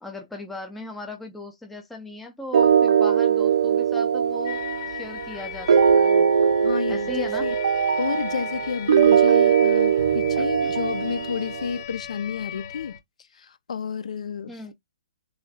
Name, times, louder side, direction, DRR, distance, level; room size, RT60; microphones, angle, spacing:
voice 1, 0.0-4.6 4.9-6.3 6.9-7.5 10.4-10.7 14.5-14.7, left 2 dB, 5° left, 0.5 m, -38 dB
sound 1, 2.5-11.7, right 8 dB, 60° right, 0.5 m, -20 dB
sound 2, 4.4-13.0, left 10 dB, 40° left, 0.8 m, -38 dB
voice 2, 6.6-7.6 8.0-13.0 13.3-14.5, left 6 dB, 70° left, 0.6 m, -30 dB
3.2 x 2.4 x 4.0 m
hypercardioid pair, 175°, 4 cm